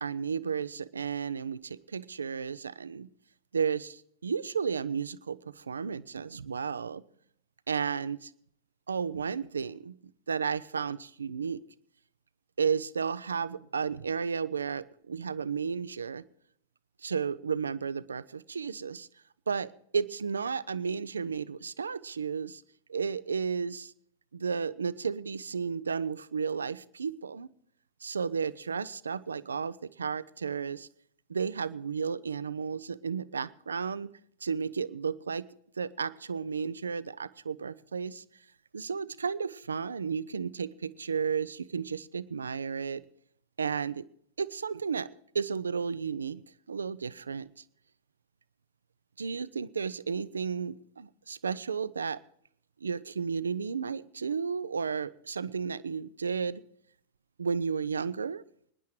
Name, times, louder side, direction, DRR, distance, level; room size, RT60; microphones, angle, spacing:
voice 1, 0.0-3.1 3.5-7.0 7.7-8.3 8.9-10.0 10.3-11.6 12.6-16.2 17.0-19.1 19.5-22.6 22.9-23.9 24.3-27.5 28.0-30.9 31.3-34.1 34.4-35.5 35.8-38.2 38.7-43.0 43.6-44.0 44.4-45.1 45.3-46.4 46.7-47.6 49.2-52.2 52.8-56.6 57.4-58.4, right 6 dB, 75° right, 18 dB, 0.4 m, -33 dB
24.5 x 10.5 x 3.2 m, 0.66 s
figure-of-eight pair, 90°, 0 cm